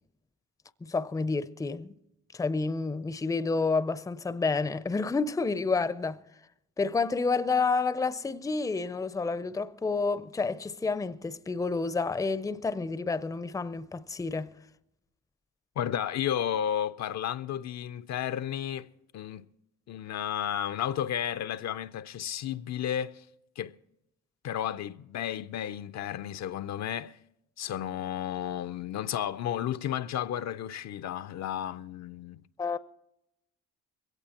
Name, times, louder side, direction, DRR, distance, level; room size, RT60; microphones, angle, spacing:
voice 1, 0.8-1.9 2.3-6.2 6.8-14.5 32.6-32.8, left 4 dB, 10° left, 0.5 m, -29 dB
voice 2, 15.8-18.9 19.1-19.5 19.9-23.2 23.6-23.7 24.4-27.2 27.6-32.4, left 10 dB, 65° left, 0.5 m, -33 dB
22.0 x 17.0 x 2.9 m
cardioid pair, 90°, 30 cm